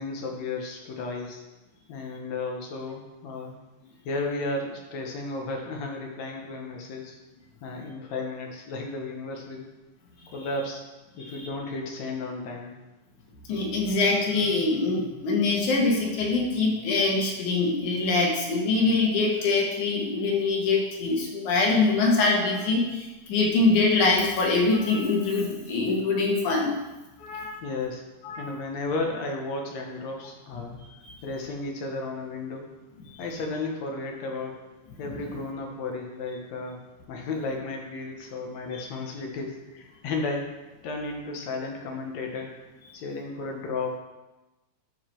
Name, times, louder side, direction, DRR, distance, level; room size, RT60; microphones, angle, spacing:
voice 1, 0.0-1.4 1.9-3.5 4.1-7.1 7.6-9.7 10.3-10.8 11.2-12.8 27.3-28.0 28.4-30.8 31.2-32.7 33.2-34.5 35.0-36.8 37.1-40.5 40.8-42.6 42.9-44.0, left 3 dB, 70° left, 1 dB, 2.3 m, -33 dB
voice 2, 13.5-26.8 27.2-27.6 28.2-28.5 30.6-31.1 35.0-35.2 38.7-38.8, left 3 dB, 90° left, -1 dB, 3.0 m, -24 dB
11.5 x 4.8 x 4.5 m, 1.1 s
omnidirectional pair, 3.3 m